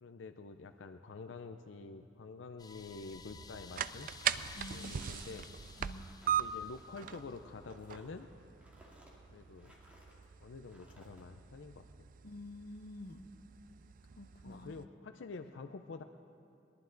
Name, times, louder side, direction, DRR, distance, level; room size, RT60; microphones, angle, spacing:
voice 1, 0.0-4.1 4.7-5.5 6.3-8.3 9.3-9.7 10.4-11.9 14.4-16.0, left 4 dB, 90° left, 7 dB, 0.5 m, -48 dB
sound 1, 2.6-7.4, left 5 dB, 20° left, 0.5 m, -54 dB
sound 2, 3.1-14.8, right 9 dB, 50° right, 0.3 m, -41 dB
sound 3, 4.1-10.2 10.6-11.2, equal, 10° right, 2.1 m, -62 dB
voice 2, 4.5-5.1 5.8-6.0 12.2-13.3 14.2-14.7, left 1 dB, 60° left, 7 dB, 0.9 m, -48 dB
21.0 x 11.5 x 3.9 m, 2.8 s
head